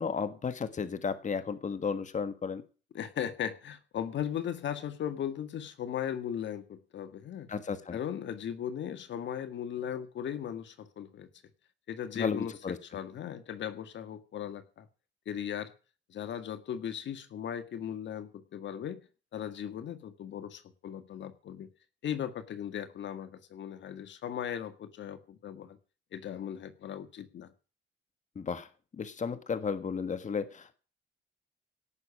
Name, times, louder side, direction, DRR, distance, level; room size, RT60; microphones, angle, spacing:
voice 1, 0.0-2.6 7.5-8.0 12.1-12.8 28.3-28.7 28.9-30.7, left 6 dB, 40° left, 11 dB, 1.6 m, -33 dB
voice 2, 2.9-7.5 7.9-11.3 11.9-12.5 12.8-14.9 15.2-15.7 16.1-19.0 19.3-21.7 22.0-25.8 26.1-27.5, left 9 dB, 65° left, 10 dB, 1.8 m, -37 dB
17.5 x 7.0 x 8.5 m, 0.37 s
cardioid pair, 90°, 20 cm